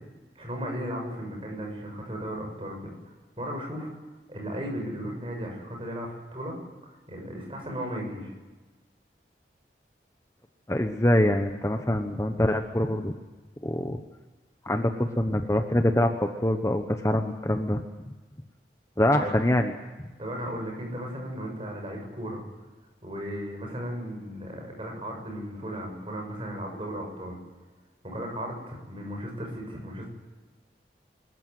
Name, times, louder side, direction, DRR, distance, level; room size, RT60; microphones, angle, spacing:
voice 1, 0.4-3.9 4.3-6.6 6.8-8.3 19.2-19.4 20.2-22.4 23.0-27.4 28.0-30.1, equal, 30° right, 1 dB, 7.0 m, -35 dB
voice 2, 10.7-13.1 13.6-14.0 14.6-17.8 19.0-19.7, left 1 dB, 15° left, 6 dB, 1.0 m, -24 dB
25.5 x 14.0 x 9.4 m, 1.2 s
head